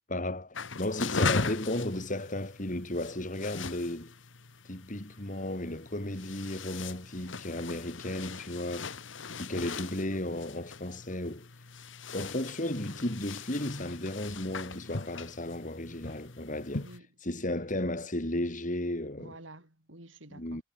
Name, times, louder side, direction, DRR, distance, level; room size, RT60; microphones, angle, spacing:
voice 1, 0.1-4.1 4.6-8.9 9.4-11.5 12.1-16.9 17.2-19.3 20.3-20.6, left 1 dB, 45° left, 4.1 m, -34 dB
sound 1, 0.5-17.0, left 4 dB, 80° left, 1.5 m, -39 dB
voice 2, 16.8-17.2 17.5-17.7 19.2-20.6, right 2 dB, 90° right, 7.1 m, -50 dB
head